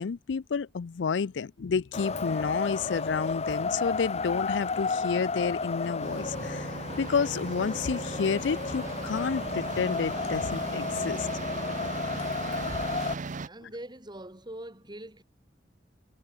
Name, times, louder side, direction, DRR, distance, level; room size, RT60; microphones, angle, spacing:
voice 1, 0.0-6.7 7.0-11.3, left 5 dB, 80° left, 0.5 m, -30 dB
Wind, 1.9-13.1, left 4 dB, 35° left, 0.9 m, -32 dB
sound 1, 6.0-13.5, right 3 dB, 45° right, 0.7 m, -38 dB
voice 2, 13.5-15.2, right 1 dB, 25° right, 6.6 m, -42 dB
head